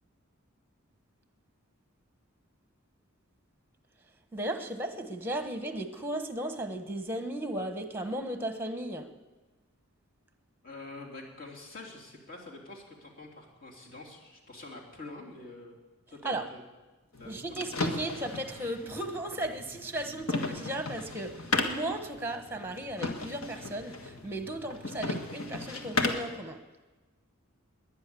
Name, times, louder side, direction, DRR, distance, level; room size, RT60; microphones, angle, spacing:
voice 1, 4.3-9.1 16.2-16.5 17.2-21.4 21.7-26.6, right 1 dB, 10° right, 7 dB, 1.2 m, -35 dB
voice 2, 10.6-15.7 16.1-16.6 17.2-17.6, left 2 dB, 45° left, -2 dB, 3.2 m, -46 dB
sound 1, 17.1-26.4, left 3 dB, 70° left, 1.7 m, -35 dB
20.5 x 10.0 x 7.0 m, 1.2 s
head